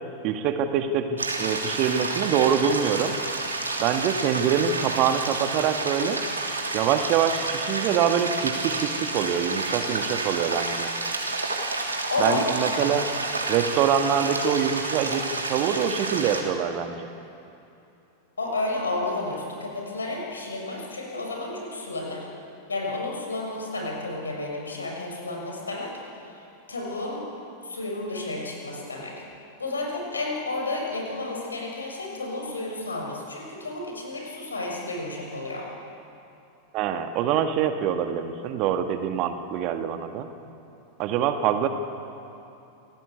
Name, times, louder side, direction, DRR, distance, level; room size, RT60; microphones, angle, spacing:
voice 1, 0.2-3.1 3.8-6.2 6.7-10.9 12.2-13.1 13.5-17.1 36.7-40.3 41.0-41.7, right 8 dB, 40° right, 7 dB, 1.8 m, -25 dB
sound 1, 1.2-16.4, right 3 dB, 80° right, 3.0 m, -30 dB
voice 2, 12.1-12.4 18.4-22.3 22.7-25.9 26.7-27.2 27.6-29.2 29.6-35.7, left 2 dB, 75° left, 0 dB, 6.3 m, -31 dB
27.5 x 17.5 x 8.3 m, 2.8 s
figure-of-eight pair, 90°, 0 cm